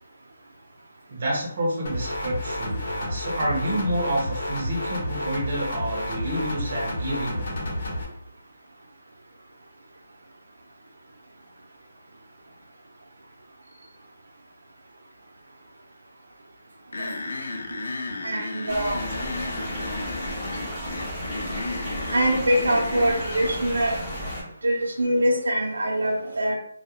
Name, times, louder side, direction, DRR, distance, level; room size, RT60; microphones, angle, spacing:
voice 1, 1.1-7.5, right 1 dB, 35° right, -3 dB, 0.6 m, -28 dB
sound 1, 1.9-8.0, left 1 dB, 40° left, 0.8 m, -31 dB
sound 2, 16.9-23.5, left 3 dB, 60° left, 0.4 m, -33 dB
voice 2, 18.2-19.0 22.1-24.0 24.6-26.5, equal, 85° right, 0 dB, 0.6 m, -23 dB
sound 3, 18.7-24.4, equal, ahead, 0.7 m, -33 dB
2.2 x 2.0 x 2.8 m, 0.67 s
hypercardioid pair, 180°, 0 cm